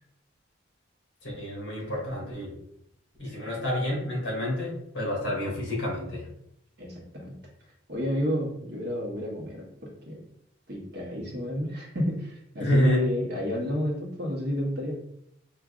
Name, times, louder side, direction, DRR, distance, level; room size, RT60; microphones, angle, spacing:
voice 1, 1.2-2.5 3.2-6.2 12.6-13.0, equal, 55° left, -3 dB, 1.2 m, -28 dB
voice 2, 6.8-7.4 7.9-9.7 10.1-10.2 10.7-15.0, left 1 dB, 50° right, -2 dB, 0.9 m, -31 dB
4.8 x 2.4 x 2.3 m, 0.76 s
head